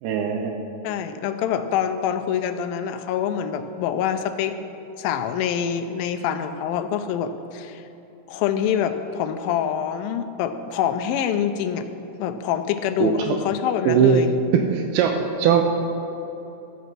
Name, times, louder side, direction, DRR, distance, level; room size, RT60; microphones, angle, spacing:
voice 1, 0.0-0.6 13.0-13.3 13.9-14.3 14.5-15.6, right 7 dB, 80° right, 4 dB, 2.5 m, -20 dB
voice 2, 0.8-4.6 5.0-7.8 8.3-11.9 12.2-14.3, left 9 dB, 85° left, 8 dB, 2.1 m, -25 dB
12.0 x 6.9 x 6.1 m, 2.9 s
omnidirectional pair, 4.6 m